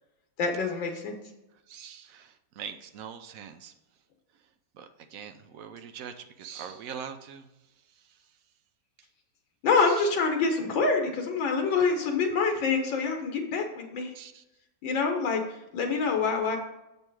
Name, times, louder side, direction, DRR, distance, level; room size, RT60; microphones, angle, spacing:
voice 1, 0.4-1.2 9.6-14.1 14.8-16.6, left 4 dB, 85° left, 3 dB, 1.8 m, -26 dB
voice 2, 1.7-3.7 4.7-7.5 8.1-8.2 9.9-10.0 14.1-14.4, right 7 dB, 70° right, 8 dB, 0.8 m, -42 dB
7.1 x 5.5 x 4.7 m, 0.91 s
omnidirectional pair, 2.0 m